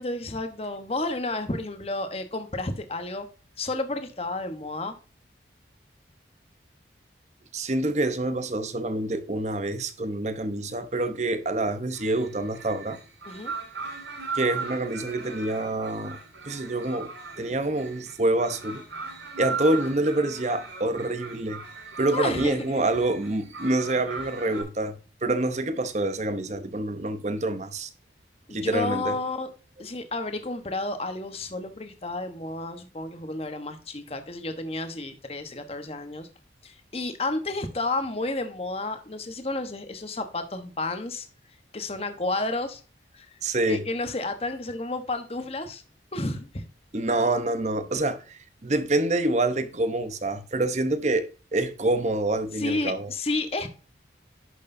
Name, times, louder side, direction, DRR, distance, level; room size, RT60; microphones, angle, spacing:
voice 1, 0.0-3.3 3.6-4.9 13.3-13.5 22.1-22.7 28.5-29.5 29.8-36.3 36.6-41.3 41.7-42.8 43.1-43.4 43.6-45.8 46.1-46.7 52.6-53.7, left 2 dB, 30° left, 1.1 m, -31 dB
voice 2, 7.5-13.0 14.3-16.2 16.5-18.8 19.4-21.6 22.0-27.9 28.5-29.2 43.4-43.8 46.9-53.1, right 2 dB, 40° right, 0.9 m, -27 dB
sound 1, 11.9-24.6, right 4 dB, 90° right, 4.3 m, -38 dB
11.0 x 6.5 x 2.7 m
head